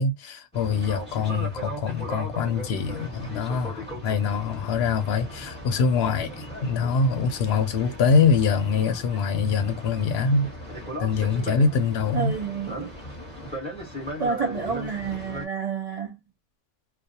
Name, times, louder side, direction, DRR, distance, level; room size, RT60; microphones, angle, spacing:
voice 1, 0.0-10.5 11.0-12.3, left 5 dB, 70° left, 0.8 m, -24 dB
Boat Water vehicle, 0.5-15.4, equal, 5° left, 1.1 m, -38 dB
voice 2, 12.1-12.9 13.5-13.6 14.2-16.2, right 5 dB, 70° right, 0.3 m, -29 dB
2.4 x 2.3 x 2.7 m
omnidirectional pair, 1.2 m